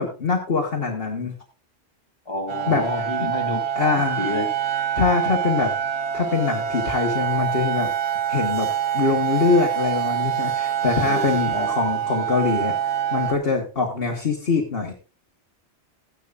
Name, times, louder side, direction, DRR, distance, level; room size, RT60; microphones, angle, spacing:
voice 1, 0.0-1.3 2.7-2.9 3.2-3.3 3.8-4.4 5.0-5.7 6.1-7.9 8.3-8.7 8.9-12.7 13.1-14.9, left 4 dB, 55° left, 1 dB, 1.8 m, -23 dB
voice 2, 2.3-4.5 11.0-11.7, left 2 dB, 20° left, 0 dB, 3.0 m, -30 dB
sound 1, 2.5-13.3, right 9 dB, 70° right, 1.1 m, -25 dB
15.0 x 10.5 x 2.5 m, 0.31 s
omnidirectional pair, 1.2 m